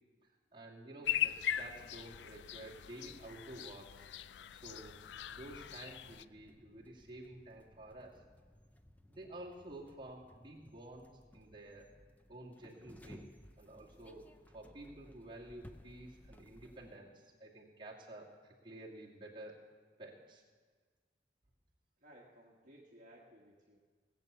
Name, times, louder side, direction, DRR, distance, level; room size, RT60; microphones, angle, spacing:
voice 1, 0.5-4.1 4.5-4.9 5.3-8.2 9.1-11.9 12.3-13.2 13.6-19.6 20.0-20.4, right 1 dB, 30° right, -4 dB, 2.4 m, -51 dB
sound 1, 1.1-6.2, left 11 dB, 85° left, 0.4 m, -40 dB
sound 2, 4.6-17.0, equal, 10° left, 0.5 m, -60 dB
voice 2, 22.0-23.8, equal, 45° right, -4 dB, 1.5 m, -59 dB
18.5 x 8.2 x 6.9 m, 1.5 s
head